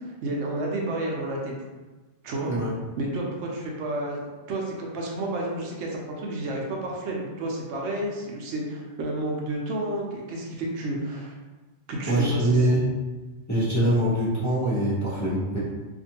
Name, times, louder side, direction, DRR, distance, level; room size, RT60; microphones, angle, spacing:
voice 1, 0.0-1.5 2.2-2.5 3.0-11.3 11.9-12.6, right 1 dB, 85° right, -1 dB, 0.9 m, -31 dB
voice 2, 12.0-12.9 13.5-15.6, right 1 dB, 20° left, -11 dB, 0.7 m, -23 dB
2.6 x 2.5 x 2.8 m, 1.2 s
omnidirectional pair, 1.1 m